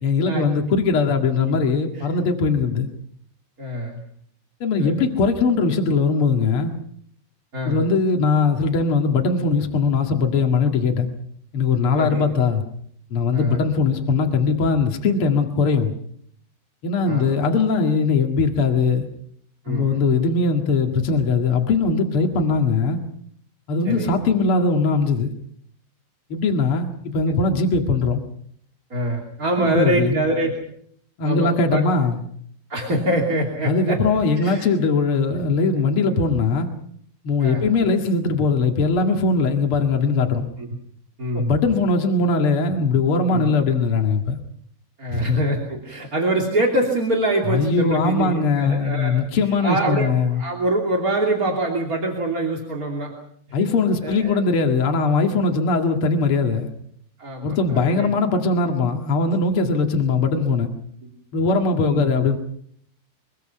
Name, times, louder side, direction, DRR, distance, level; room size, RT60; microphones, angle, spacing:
voice 1, 0.0-2.9 4.6-6.7 7.6-11.1 11.5-12.6 13.1-15.9 16.8-19.1 19.7-23.0 23.7-25.3 26.3-28.2 29.6-30.2 31.2-32.2 33.6-36.7 37.2-40.5 41.3-44.4 45.1-45.4 47.5-50.4 53.5-56.7 57.4-60.7 61.3-62.4, left 4 dB, 55° left, 3 dB, 1.5 m, -20 dB
voice 2, 3.6-4.0 4.8-4.9 7.5-7.9 11.9-12.2 13.3-13.6 17.0-17.4 19.6-20.0 23.8-24.1 28.9-30.5 31.2-31.8 32.7-34.0 34.4-34.7 37.4-37.7 40.6-40.7 41.2-41.5 43.3-43.5 45.0-49.2 49.6-53.1 53.5-53.6 54.0-54.4 57.2-58.1 61.0-61.1 61.8-62.1, right 1 dB, 25° right, 0 dB, 2.2 m, -24 dB
24.5 x 23.5 x 5.7 m, 0.65 s
omnidirectional pair, 5.5 m